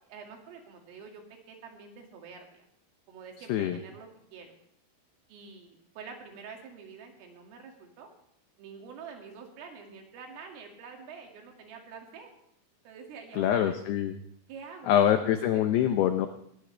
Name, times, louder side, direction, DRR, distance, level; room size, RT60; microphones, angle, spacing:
voice 1, 0.1-2.7 3.1-4.5 5.3-8.1 8.6-12.3 12.8-13.8 14.5-15.7, right 5 dB, 80° right, 2 dB, 5.0 m, -47 dB
voice 2, 13.4-14.2 14.9-16.3, left 10 dB, 90° left, 8 dB, 2.3 m, -24 dB
20.0 x 19.0 x 3.4 m, 0.71 s
omnidirectional pair, 5.7 m